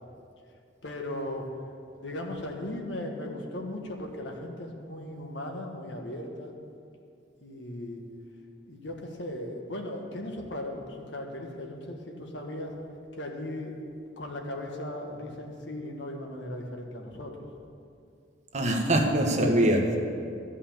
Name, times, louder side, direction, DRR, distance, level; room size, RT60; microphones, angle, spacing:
voice 1, 0.8-1.5 2.0-6.5 7.4-8.0 8.6-12.7 13.1-13.8 14.2-17.5, left 1 dB, 80° left, 1 dB, 1.5 m, -37 dB
voice 2, 18.5-20.0, right 1 dB, 40° right, 2 dB, 1.2 m, -23 dB
12.5 x 5.6 x 8.6 m, 2.4 s
head